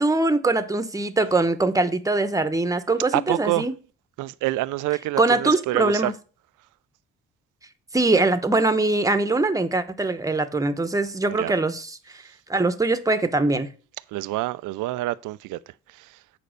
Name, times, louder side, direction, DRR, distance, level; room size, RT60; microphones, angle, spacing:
voice 1, 0.0-3.7 5.2-6.1 7.9-12.0 12.5-13.7, right 2 dB, 10° right, 0.9 m, -22 dB
voice 2, 3.1-3.7 4.2-6.1 11.3-11.5 14.1-15.6, right 17 dB, 90° right, 0.5 m, -26 dB
8.6 x 4.0 x 6.5 m
cardioid pair, 90°, 30 cm